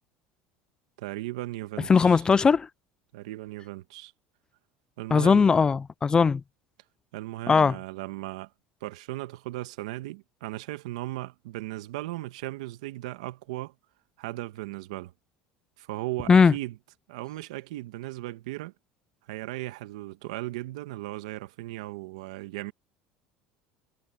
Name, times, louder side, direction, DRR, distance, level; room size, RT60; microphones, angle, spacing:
voice 1, 1.0-2.2 3.1-4.1 5.0-5.5 7.1-8.5 8.8-13.7 14.2-15.1 15.8-16.8 17.1-18.7 19.3-22.7, right 17 dB, 85° right, 1.6 m, -37 dB
voice 2, 1.9-2.7 5.1-6.4 7.5-7.8 16.3-16.5, left 5 dB, 25° left, 0.5 m, -19 dB
supercardioid pair, 100°, 3 cm